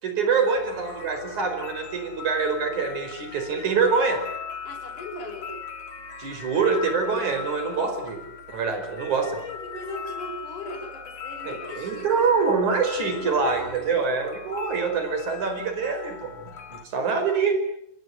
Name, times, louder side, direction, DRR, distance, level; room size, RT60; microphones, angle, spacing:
voice 1, 0.0-4.2 6.2-8.2 8.5-9.3 11.5-16.3 16.7-17.6, right 5 dB, 60° right, 6 dB, 6.4 m, -25 dB
sound 1, 0.5-16.8, left 6 dB, 50° left, 3.6 m, -39 dB
voice 2, 4.6-5.6 9.2-12.3 12.9-13.6, left 2 dB, 65° left, 0 dB, 7.1 m, -38 dB
27.5 x 22.5 x 9.6 m, 0.76 s
omnidirectional pair, 3.8 m